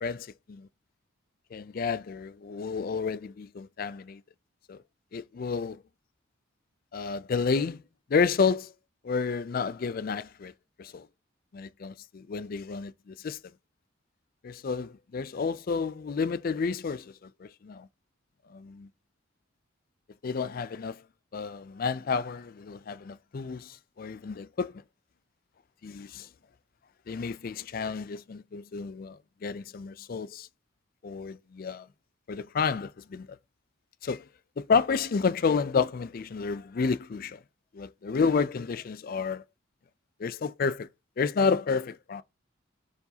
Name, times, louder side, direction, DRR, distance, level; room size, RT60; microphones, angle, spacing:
voice 1, 0.0-0.7 1.5-4.2 4.7-4.8 5.1-5.8 6.9-7.8 8.1-8.7 9.0-10.5 10.8-11.1 11.5-13.4 14.4-17.1 17.4-17.9 18.5-18.9 20.2-21.0 21.3-24.7 25.8-26.3 27.1-30.5 31.0-31.8 32.3-33.3 34.0-34.2 34.6-37.4 37.7-39.4 40.2-40.9 41.2-42.2, left 5 dB, 45° left, 0.4 m, -30 dB
12.0 x 4.6 x 2.8 m
head